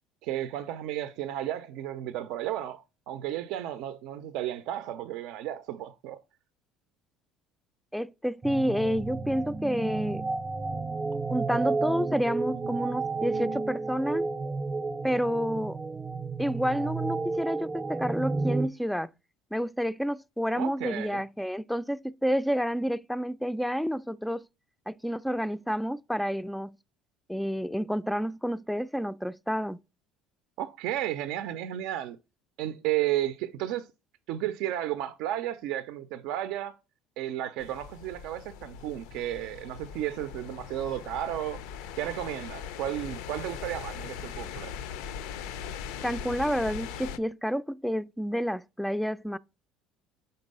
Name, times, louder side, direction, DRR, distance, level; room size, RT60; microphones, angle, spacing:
voice 1, 0.2-6.2 20.6-21.2 30.6-32.2 32.6-33.9 34.3-36.8 37.2-41.6 42.0-44.7, right 12 dB, 75° right, 0.4 m, -33 dB
voice 2, 7.9-10.2 11.3-14.3 15.0-15.8 16.4-19.1 19.5-24.5 24.9-26.8 27.3-29.8 46.0-49.4, equal, ahead, 0.3 m, -29 dB
sound 1, 8.4-18.7, right 3 dB, 25° right, 0.6 m, -32 dB
sound 2, 37.6-47.2, left 7 dB, 80° left, 0.5 m, -40 dB
5.3 x 4.0 x 5.3 m
supercardioid pair, 90°, 0 cm